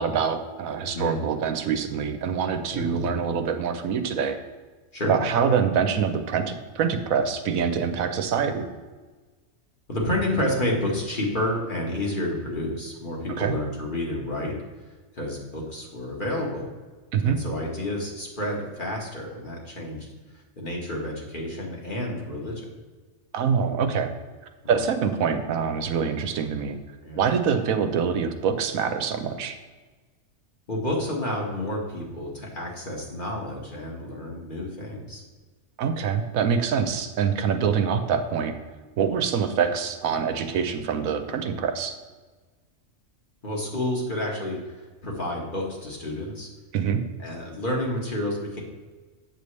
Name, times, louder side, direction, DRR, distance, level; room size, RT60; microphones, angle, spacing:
voice 1, 0.0-4.4 5.0-8.7 13.4-13.6 17.1-17.4 23.3-24.1 24.7-26.8 27.2-29.6 35.8-38.5 39.0-41.9 46.7-47.0, right 6 dB, 85° right, 8 dB, 1.1 m, -25 dB
voice 2, 9.9-14.5 15.1-16.7 17.2-20.1 20.6-22.7 24.8-24.9 27.0-27.3 30.7-35.2 37.4-37.7 43.4-46.5 47.2-48.6, left 1 dB, 40° left, -2 dB, 1.6 m, -30 dB
8.4 x 6.8 x 3.2 m, 1.3 s
omnidirectional pair, 1.4 m